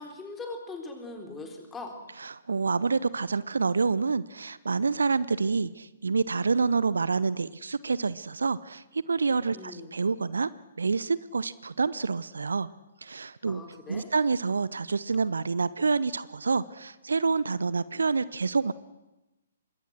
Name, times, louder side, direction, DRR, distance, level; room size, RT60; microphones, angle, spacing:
voice 1, 0.0-1.9 9.5-9.9 13.5-14.1, left 3 dB, 10° left, 3 dB, 4.0 m, -40 dB
voice 2, 2.3-10.5 10.8-12.7 13.0-13.6 13.9-18.7, right 4 dB, 70° right, 19 dB, 0.7 m, -27 dB
26.0 x 22.0 x 6.4 m, 1.0 s
figure-of-eight pair, 125°, 0 cm